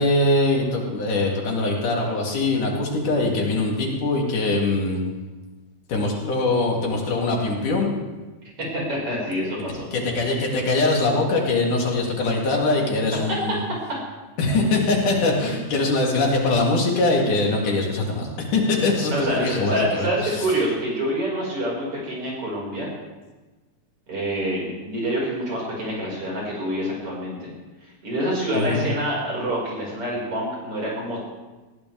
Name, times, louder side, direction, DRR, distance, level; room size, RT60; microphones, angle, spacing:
voice 1, 0.0-5.0 5.9-7.9 9.9-13.6 14.4-20.5 28.5-28.8, left 2 dB, 90° left, -1 dB, 4.2 m, -22 dB
voice 2, 8.6-9.9 13.3-13.4 13.7-13.8 19.1-22.9 24.1-27.5 28.0-31.2, right 1 dB, 45° right, -3 dB, 6.3 m, -26 dB
20.0 x 17.0 x 3.5 m, 1.2 s
omnidirectional pair, 3.5 m